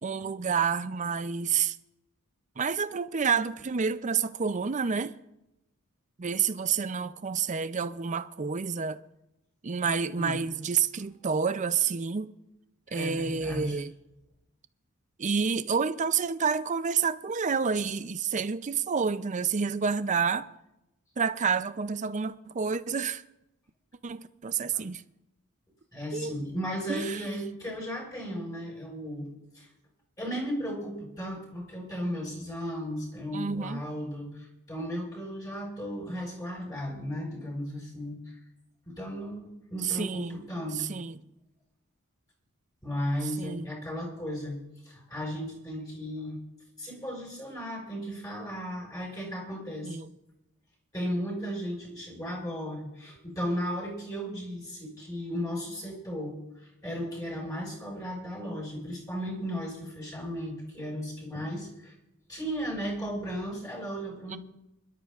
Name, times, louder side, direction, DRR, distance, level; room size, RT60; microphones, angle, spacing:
voice 1, 0.0-1.8 2.6-5.2 6.2-9.0 9.6-12.3 12.9-13.9 15.2-20.5 21.2-23.2 24.0-25.0 26.1-26.4 26.9-27.2 33.3-33.8 39.8-40.4 40.8-41.2 43.4-43.7 49.8-50.1 64.3-64.4, right 6 dB, 35° right, 0.5 m, -29 dB
voice 2, 12.9-13.8 24.7-24.8 25.9-29.3 29.5-29.7 30.2-38.4 38.8-41.0 42.8-44.6 44.8-46.4 46.8-50.0 50.9-61.9 62.3-64.4, equal, 15° left, 5.1 m, -35 dB
26.0 x 12.5 x 2.5 m
head